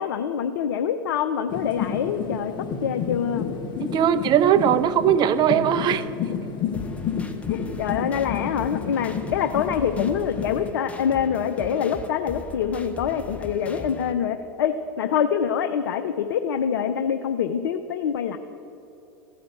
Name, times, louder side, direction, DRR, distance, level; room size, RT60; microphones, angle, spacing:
voice 1, 0.0-2.5 2.8-3.5 7.5-18.4, left 8 dB, 75° left, 9 dB, 0.5 m, -25 dB
sound 1, 1.5-10.7, left 7 dB, 40° left, 1.1 m, -31 dB
voice 2, 3.8-6.0, right 9 dB, 40° right, 13 dB, 0.6 m, -19 dB
sound 2, 6.7-14.1, left 4 dB, 10° left, 0.9 m, -39 dB
15.0 x 5.1 x 8.3 m, 2.9 s
hypercardioid pair, 90°, 12 cm